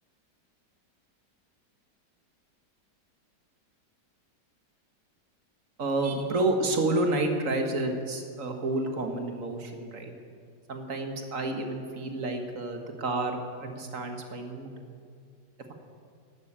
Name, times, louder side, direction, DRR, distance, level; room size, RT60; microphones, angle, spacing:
voice 1, 5.8-10.1 10.7-14.7, right 2 dB, 50° right, 4 dB, 1.8 m, -30 dB
12.5 x 11.5 x 8.8 m, 2.2 s
omnidirectional pair, 1.9 m